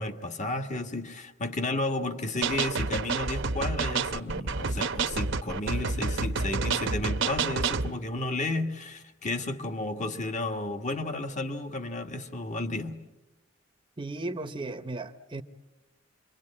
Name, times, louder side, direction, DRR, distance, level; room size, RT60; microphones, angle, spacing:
voice 1, 0.0-13.0, left 2 dB, 35° left, 1.6 m, -32 dB
sound 1, 2.4-7.9, right 4 dB, 65° right, 0.9 m, -29 dB
voice 2, 14.0-15.4, right 2 dB, 25° right, 0.9 m, -35 dB
27.5 x 24.0 x 8.6 m
head